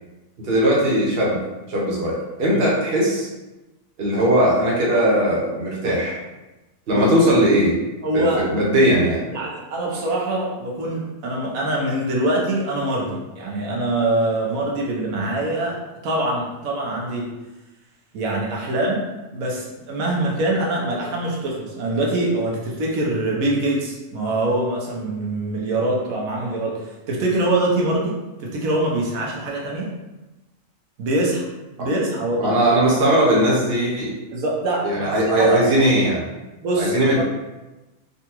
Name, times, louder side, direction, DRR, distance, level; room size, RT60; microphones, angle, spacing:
voice 1, 0.4-1.4 1.7-3.3 4.0-6.2 6.9-7.7 8.1-9.2 31.8-31.9 32.4-34.1 34.8-36.2 36.8-37.2, right 1 dB, 50° right, -4 dB, 1.0 m, -19 dB
voice 2, 8.0-8.4 9.3-15.8 16.0-17.3 18.1-19.0 19.3-28.1 28.4-29.9 31.0-31.5 31.8-32.6 34.3-35.1 35.4-35.5 36.6-37.2, right 1 dB, 90° right, -2 dB, 1.2 m, -24 dB
3.8 x 2.3 x 2.9 m, 1.1 s
omnidirectional pair, 1.4 m